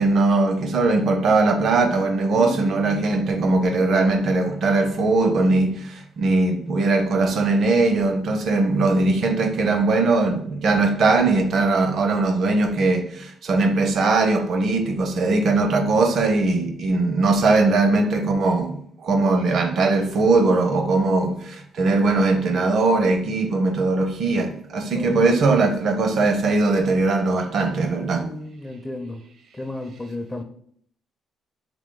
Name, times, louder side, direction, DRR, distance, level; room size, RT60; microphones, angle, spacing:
voice 1, 0.0-28.3, right 3 dB, 65° right, 0.6 m, -20 dB
voice 2, 2.3-3.3 24.9-25.1 28.1-29.2 29.6-30.4, left 1 dB, 15° left, 0.5 m, -33 dB
3.7 x 3.0 x 3.8 m
cardioid pair, 90°, 0 cm